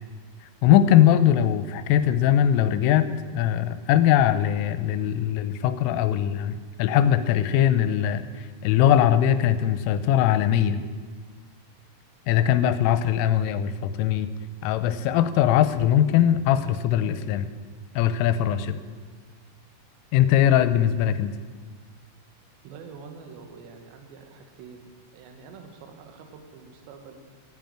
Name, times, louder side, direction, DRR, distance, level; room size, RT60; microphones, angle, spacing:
voice 1, 0.4-10.8 12.3-14.3 14.6-17.5 18.0-18.8 20.1-21.3, left 10 dB, 85° left, 12 dB, 3.2 m, -21 dB
voice 2, 22.6-27.2, right 5 dB, 70° right, 5 dB, 3.3 m, -46 dB
14.5 x 9.3 x 8.8 m, 1.5 s
omnidirectional pair, 5.7 m